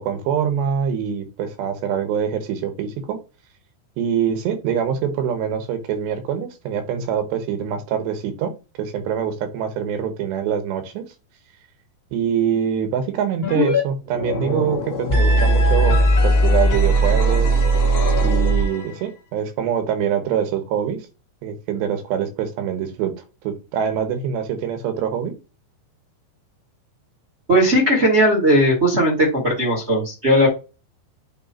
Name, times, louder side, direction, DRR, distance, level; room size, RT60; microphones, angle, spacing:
voice 1, 0.0-3.2 4.0-8.5 8.8-11.0 12.1-17.6 18.2-21.0 21.4-23.1 23.4-25.3, right 8 dB, 75° right, 8 dB, 3.3 m, -24 dB
sound 1, 13.4-13.8 14.1-19.0, right 1 dB, 60° left, 0.6 m, -18 dB
voice 2, 27.5-30.5, equal, 40° right, -3 dB, 0.9 m, -17 dB
8.5 x 3.3 x 4.3 m, 0.29 s
omnidirectional pair, 5.1 m